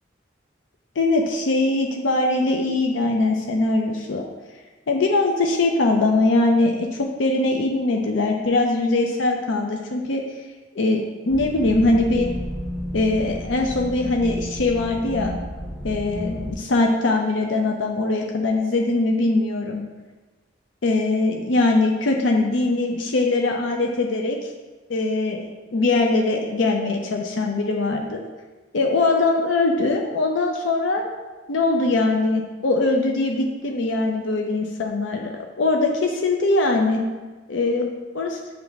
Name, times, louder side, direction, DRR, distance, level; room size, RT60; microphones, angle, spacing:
voice 1, 1.0-4.2 4.9-10.2 10.7-12.3 12.9-15.3 15.8-19.8 20.8-24.5 24.9-28.2 28.7-31.1 31.5-37.0 37.5-38.4, left 2 dB, 90° left, 2 dB, 0.5 m, -21 dB
sound 1, 11.3-16.5, equal, ahead, 0.5 m, -32 dB
8.1 x 3.3 x 3.9 m, 1.3 s
head